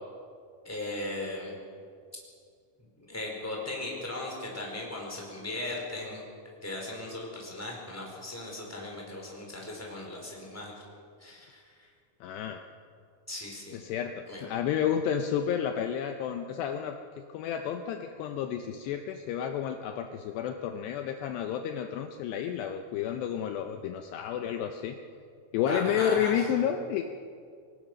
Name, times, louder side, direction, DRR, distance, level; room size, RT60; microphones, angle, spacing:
voice 1, 0.6-1.5 3.1-6.2 6.6-10.7 11.2-11.6 13.3-13.8 14.3-14.5 25.7-26.4, left 2 dB, 5° left, -2 dB, 4.4 m, -37 dB
voice 2, 12.2-12.6 13.7-17.0 17.3-24.9 25.5-27.0, left 9 dB, 75° left, 6 dB, 2.7 m, -31 dB
25.0 x 19.5 x 6.3 m, 2.2 s
omnidirectional pair, 5.3 m